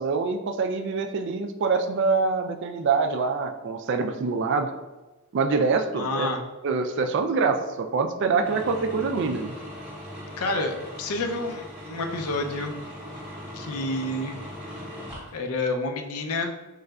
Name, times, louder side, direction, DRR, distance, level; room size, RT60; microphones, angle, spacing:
voice 1, 0.0-4.7 5.3-6.3 6.6-9.5, right 4 dB, 55° right, 6 dB, 0.3 m, -25 dB
voice 2, 6.0-6.4 10.4-12.7 13.5-14.4 15.3-16.5, left 2 dB, 80° left, 4 dB, 0.5 m, -29 dB
sound 1, 8.4-15.3, equal, 5° right, 0.7 m, -39 dB
3.7 x 3.1 x 2.3 m, 1.2 s
head